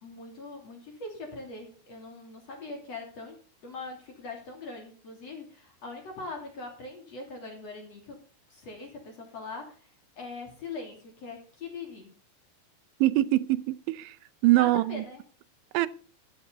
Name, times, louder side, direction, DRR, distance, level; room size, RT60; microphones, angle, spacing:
voice 1, 0.0-3.4 3.6-8.2 8.5-9.9 10.2-12.1 14.5-15.2, left 3 dB, 40° left, 3.5 m, -41 dB
voice 2, 13.0-14.2 14.4-15.0 15.7-15.9, right 17 dB, 90° right, 3.0 m, -23 dB
13.5 x 10.0 x 3.9 m
omnidirectional pair, 5.2 m